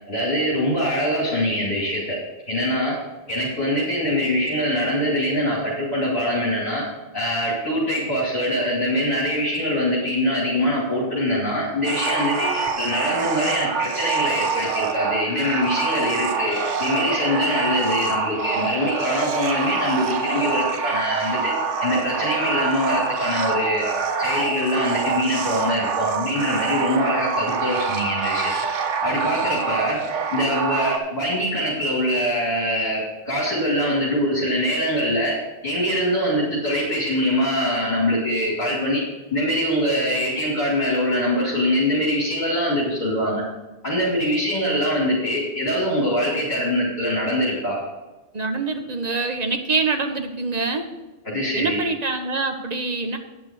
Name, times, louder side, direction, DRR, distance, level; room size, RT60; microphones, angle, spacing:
voice 1, 0.1-2.2 2.5-2.9 3.3-6.8 7.1-21.5 21.8-23.8 24.2-28.5 29.0-30.0 30.3-35.4 35.6-39.0 39.3-43.4 43.8-47.8 51.2-51.8, equal, 40° left, -7 dB, 2.9 m, -23 dB
sound 1, 11.8-31.0, right 5 dB, 80° right, 1.2 m, -26 dB
voice 2, 48.3-50.8 51.6-53.2, right 3 dB, 40° right, 5 dB, 1.0 m, -25 dB
10.0 x 6.1 x 6.5 m, 1.1 s
omnidirectional pair, 1.2 m